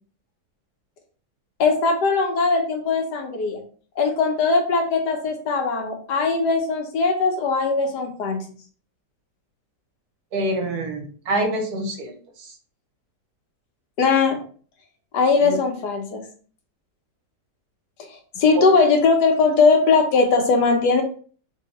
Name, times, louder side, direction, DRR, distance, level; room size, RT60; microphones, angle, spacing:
voice 1, 1.6-3.6 4.0-8.4 14.0-14.4 15.1-16.2 18.1-21.0, left 4 dB, 75° left, 3 dB, 1.4 m, -20 dB
voice 2, 10.3-12.1 12.4-12.5 15.4-15.6 18.5-18.7, right 1 dB, 65° right, 3 dB, 1.4 m, -26 dB
3.4 x 2.8 x 4.1 m, 0.43 s
omnidirectional pair, 1.8 m